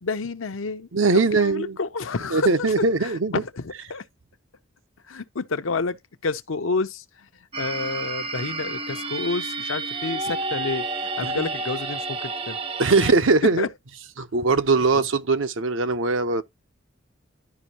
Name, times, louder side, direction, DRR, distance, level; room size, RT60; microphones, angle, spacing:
voice 1, 0.0-2.7 3.0-4.0 5.1-6.0 6.2-7.3 7.6-12.6 13.0-13.1 13.4-13.7 14.9-15.0, left 4 dB, 90° left, 0.8 m, -29 dB
voice 2, 0.9-1.8 2.3-3.3 11.2-11.5 12.8-13.7 14.2-16.4, right 3 dB, 80° right, 0.8 m, -21 dB
sound 1, 7.5-13.1, right 3 dB, 25° right, 0.6 m, -30 dB
11.5 x 5.3 x 2.9 m
head